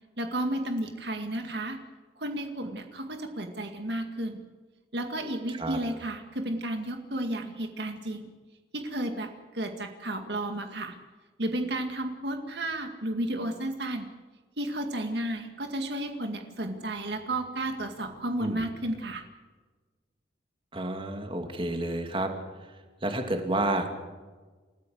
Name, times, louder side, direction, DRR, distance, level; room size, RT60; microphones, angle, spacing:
voice 1, 0.2-1.8 2.2-4.4 4.9-8.3 8.7-9.3 9.5-11.0 11.4-14.1 14.6-19.2, right 1 dB, 60° right, 5 dB, 2.1 m, -32 dB
voice 2, 20.7-22.3 23.0-24.0, right 1 dB, 30° right, 4 dB, 2.6 m, -30 dB
29.5 x 14.5 x 8.0 m, 1.4 s
head